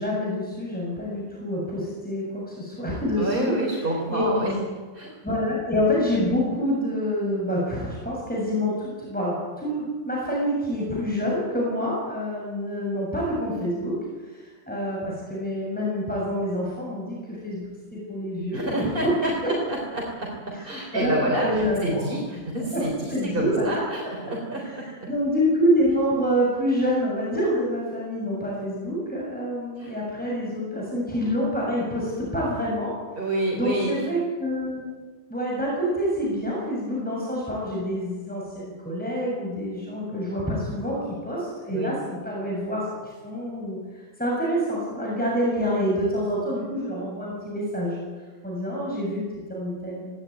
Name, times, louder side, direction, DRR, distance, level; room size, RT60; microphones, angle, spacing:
voice 1, 0.0-3.6 4.1-4.6 5.2-14.0 14.3-19.1 19.4-19.5 20.6-22.0 22.6-23.8 24.6-32.9 33.5-34.9 35.3-42.9 43.2-43.8 44.2-48.0 48.4-50.0, equal, 5° left, -4 dB, 7.1 m, -27 dB
voice 2, 3.2-4.6 4.9-5.1 18.5-19.3 19.7-21.5 21.8-25.1 29.8-29.9 33.2-34.0 41.7-42.0, right 1 dB, 45° right, -3 dB, 4.3 m, -28 dB
18.5 x 18.5 x 9.4 m, 1.4 s
omnidirectional pair, 1.3 m